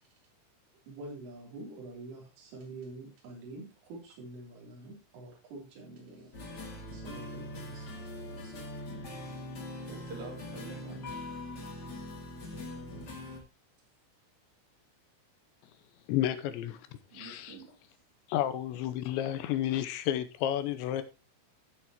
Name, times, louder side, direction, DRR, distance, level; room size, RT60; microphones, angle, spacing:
voice 1, 0.9-6.4 6.9-7.9, right 2 dB, 80° right, 5.8 m, -46 dB
sound 1, 6.3-13.4, left 1 dB, 40° left, 1.4 m, -42 dB
voice 2, 7.9-8.7 9.2-9.5 9.9-11.0 17.1-17.8, right 3 dB, 45° right, 3.4 m, -48 dB
voice 3, 16.1-16.8 17.1-17.6 18.3-21.0, left 12 dB, 80° left, 2.8 m, -31 dB
15.5 x 6.9 x 2.9 m
omnidirectional pair, 5.6 m